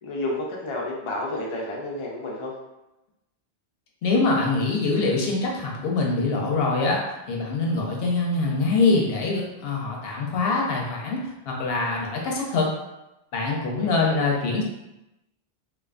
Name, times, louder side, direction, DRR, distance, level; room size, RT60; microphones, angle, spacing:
voice 1, 0.0-2.5 13.6-14.2, left 1 dB, 55° left, -3 dB, 0.3 m, -31 dB
voice 2, 4.0-7.0 7.3-12.7 13.3-14.6, left 3 dB, 70° left, -2 dB, 0.7 m, -24 dB
2.3 x 2.2 x 2.4 m, 0.94 s
omnidirectional pair, 1.1 m